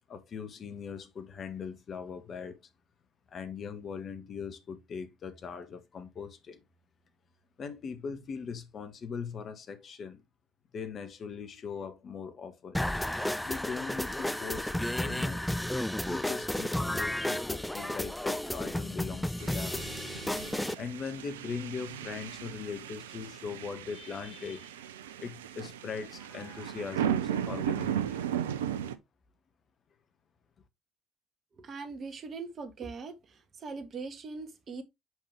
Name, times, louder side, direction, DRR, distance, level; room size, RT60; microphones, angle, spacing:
voice 1, 0.1-2.6 3.3-6.6 7.6-10.2 10.7-12.8 13.4-15.4 16.0-19.8 20.7-24.8 25.2-28.2, left 6 dB, 45° left, 1.3 m, -40 dB
sound 1, 12.7-20.7, left 1 dB, 5° left, 0.5 m, -32 dB
sound 2, 19.4-29.0, right 10 dB, 80° right, 0.5 m, -36 dB
voice 2, 31.6-34.8, right 4 dB, 45° right, 1.4 m, -41 dB
6.3 x 5.2 x 3.3 m
figure-of-eight pair, 50°, 0 cm